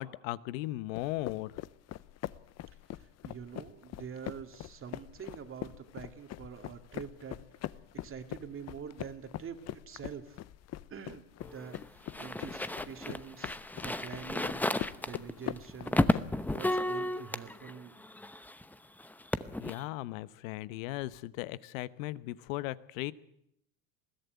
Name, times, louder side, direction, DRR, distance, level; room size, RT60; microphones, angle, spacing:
voice 1, 0.0-1.6 19.6-23.1, left 17 dB, 85° left, 17 dB, 1.0 m, -37 dB
sound 1, 1.0-16.6, left 13 dB, 40° left, 0.7 m, -43 dB
voice 2, 2.9-7.8 8.0-10.4 10.9-11.2 11.5-14.7 15.0-16.2 16.5-18.0, right 7 dB, 35° right, 7 dB, 2.4 m, -46 dB
sound 2, 11.4-18.7 19.0-19.8, left 1 dB, 5° left, 0.8 m, -33 dB
21.0 x 14.5 x 9.4 m, 0.75 s
supercardioid pair, 115°, 39 cm